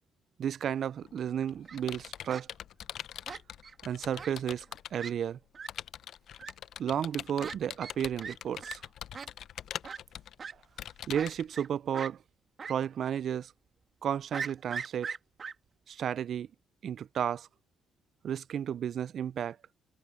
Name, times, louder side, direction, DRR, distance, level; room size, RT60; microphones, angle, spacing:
voice 1, 0.4-2.5 3.8-4.7 4.9-5.4 6.8-8.8 11.1-12.2 12.7-13.5 14.0-15.1 15.9-16.5 16.8-17.5 18.2-19.6, right 9 dB, 60° right, 0.3 m, -33 dB
Computer keyboard, 1.0-5.1 5.7-11.4, left 10 dB, 70° left, 0.6 m, -43 dB
Fowl, 1.4-1.8 2.3-2.4 3.3-3.7 4.1-4.3 4.6-4.7 5.0-5.1 5.5-5.7 6.4-6.5 7.4-7.5 7.8-7.9 8.2-8.4 8.6-8.7 9.1-9.3 9.8-10.0 10.4-10.5 11.1-11.7 11.9-12.1 12.6-12.7 13.1-13.2 14.3-15.5, right 5 dB, 45° right, 2.0 m, -39 dB
cardioid pair, 90°, 0 cm